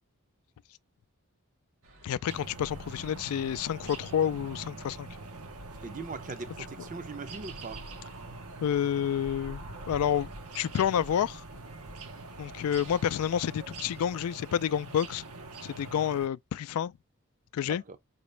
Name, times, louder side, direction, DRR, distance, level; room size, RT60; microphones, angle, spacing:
sound 1, 1.8-14.0, right 1 dB, 55° right, 1.0 m, -57 dB
voice 1, 2.0-5.1 8.6-10.3 10.5-11.4 12.4-15.2 15.6-16.9 17.5-17.8, left 9 dB, 75° left, 0.3 m, -29 dB
sound 2, 2.3-16.3, right 3 dB, 85° right, 0.8 m, -44 dB
voice 2, 5.8-7.9 17.6-18.0, right 4 dB, 35° right, 0.5 m, -40 dB
5.0 x 2.7 x 3.2 m
head